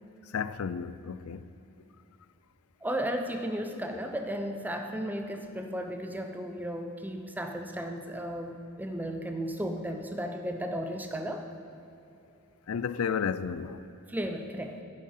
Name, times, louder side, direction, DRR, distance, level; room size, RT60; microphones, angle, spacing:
voice 1, 0.3-1.5 12.7-13.9, left 6 dB, 85° left, 0.4 m, -32 dB
voice 2, 2.8-11.5 14.1-14.8, equal, 10° right, 0.7 m, -34 dB
10.0 x 8.5 x 5.7 m
head